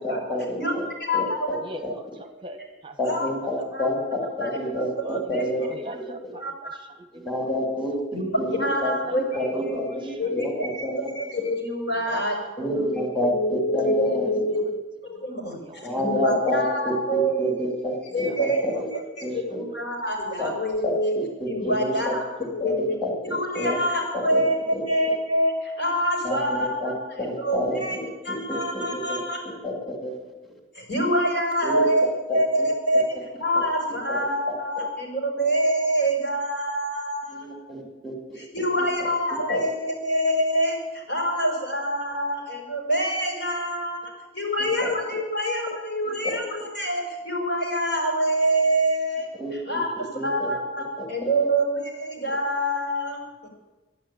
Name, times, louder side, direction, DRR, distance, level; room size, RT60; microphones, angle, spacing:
voice 1, 0.0-0.8 1.1-1.6 3.0-5.7 5.9-6.3 7.1-11.1 12.6-14.2 15.8-18.9 19.2-19.6 20.4-20.5 20.8-22.2 22.6-23.8 24.1-24.4 24.7-24.8 26.2-26.9 27.2-29.2 29.6-30.2 30.4-30.5 31.6-32.7 33.5-33.6 34.1-34.2 37.3-38.1 38.7-39.1 39.5-39.6 44.6-44.9 46.0-46.2 49.3-49.5 50.0-50.5 51.2-51.3, left 1 dB, ahead, 0 dB, 2.5 m, -29 dB
voice 2, 1.0-1.5 1.7-1.9 2.6-2.7 3.0-3.3 3.7-3.9 4.4-4.8 5.1-5.4 6.4-6.5 8.1-9.5 10.2-12.4 12.6-14.6 15.0-17.5 18.1-18.6 19.3-21.1 21.5-22.2 22.5-23.0 23.2-26.7 27.1-28.0 28.2-29.4 30.7-32.1 32.3-33.0 33.4-37.5 38.4-49.3 49.7-53.5, equal, 70° left, 0 dB, 5.8 m, -26 dB
voice 3, 2.2-3.0 5.0-7.2 8.0-8.1 8.8-10.1 12.1-12.5 14.5-14.6 15.3-15.9 18.1-19.0, right 1 dB, 25° right, 7 dB, 0.9 m, -41 dB
12.5 x 11.0 x 8.8 m, 1.2 s
head